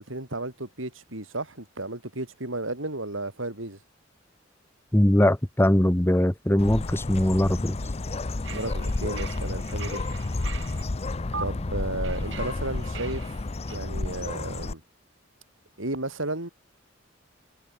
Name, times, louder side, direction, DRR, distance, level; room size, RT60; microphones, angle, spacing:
voice 1, 0.0-3.8 8.5-10.0 11.4-13.4 13.7-14.8 15.8-16.5, right 2 dB, 85° right, 5.7 m, -33 dB
voice 2, 4.9-7.8, left 1 dB, 10° left, 1.2 m, -21 dB
Bird, 6.6-14.7, left 2 dB, 30° left, 0.6 m, -31 dB
sound 1, 8.4-10.8 11.3-11.4 12.0-13.8, right 5 dB, 70° right, 3.8 m, -41 dB
head